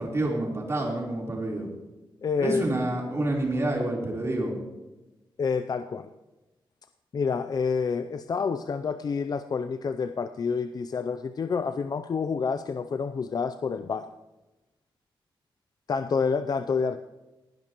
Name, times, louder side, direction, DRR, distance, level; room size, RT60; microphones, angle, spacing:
voice 1, 0.0-1.7 2.4-4.5, right 1 dB, 30° right, -2 dB, 3.7 m, -28 dB
voice 2, 2.2-2.6 5.4-6.1 7.1-14.1 15.9-17.0, left 5 dB, 50° left, 10 dB, 0.4 m, -28 dB
19.5 x 11.0 x 3.0 m, 1.1 s
wide cardioid pair, 120°, 9 cm